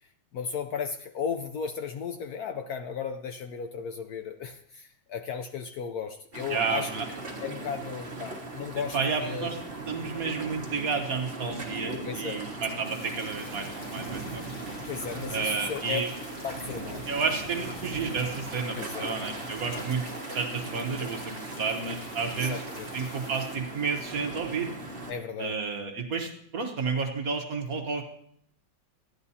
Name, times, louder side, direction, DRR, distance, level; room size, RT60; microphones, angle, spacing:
voice 1, 0.3-6.9 7.4-9.5 12.0-12.4 14.8-16.0 16.4-17.1 18.7-19.1 22.4-22.9 25.1-25.5, left 6 dB, 70° left, 7 dB, 1.0 m, -35 dB
sound 1, 6.3-25.1, right 2 dB, 30° right, 1.7 m, -39 dB
voice 2, 6.5-7.0 8.9-9.6 9.9-14.7 15.3-16.1 17.1-20.0 20.3-22.6 22.9-24.8 25.4-28.0, right 5 dB, 55° right, 3 dB, 1.4 m, -31 dB
sound 2, 12.8-23.6, left 1 dB, 40° left, 2.6 m, -46 dB
14.5 x 10.5 x 2.8 m, 0.66 s
omnidirectional pair, 2.0 m